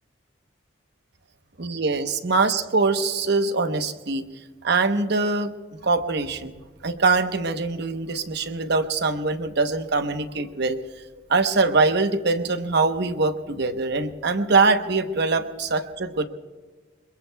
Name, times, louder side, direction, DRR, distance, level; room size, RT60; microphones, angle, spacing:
voice 1, 1.6-4.2 4.6-5.5 5.8-10.8 11.3-16.3, right 3 dB, 55° right, 8 dB, 0.9 m, -23 dB
26.0 x 22.0 x 2.3 m, 1.4 s
head